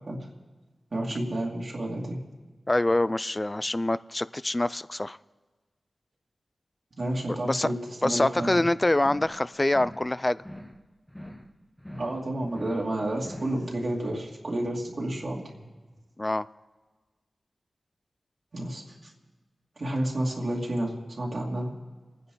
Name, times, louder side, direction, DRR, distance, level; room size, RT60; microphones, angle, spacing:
voice 1, 0.9-2.2 7.0-7.7 8.0-8.7 11.9-15.4 18.5-19.1 19.8-21.7, right 1 dB, 60° right, -3 dB, 2.5 m, -30 dB
voice 2, 2.7-5.2 7.4-7.7 8.0-10.4 16.2-16.5, left 1 dB, 25° left, 17 dB, 0.4 m, -25 dB
sound 1, 8.3-8.7 9.0-9.4 9.7-10.1 10.4-10.8 11.1-11.5 11.8-12.2 12.5-12.9 13.2-13.6, equal, 10° left, 1.0 m, -44 dB
28.5 x 10.0 x 3.9 m, 1.3 s
cardioid pair, 55°, 0 cm